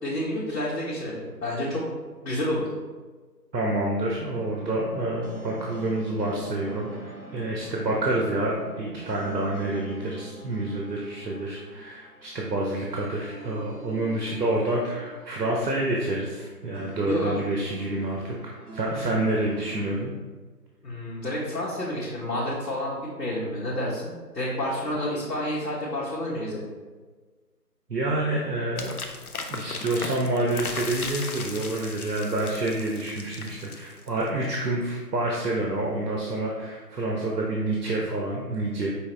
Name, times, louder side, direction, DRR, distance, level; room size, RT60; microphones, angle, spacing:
voice 1, 0.0-1.8 2.2-2.7 17.1-17.4 18.9-19.4 20.8-26.7, left 1 dB, 80° left, -8 dB, 1.4 m, -29 dB
voice 2, 3.5-20.1 27.9-29.0 29.5-38.9, right 2 dB, 90° right, -2 dB, 0.9 m, -28 dB
sound 1, 4.2-20.0, right 3 dB, 60° right, 1.1 m, -43 dB
sound 2, 28.8-34.3, left 4 dB, 60° left, 0.6 m, -36 dB
5.7 x 2.8 x 3.2 m, 1.4 s
figure-of-eight pair, 170°, 49 cm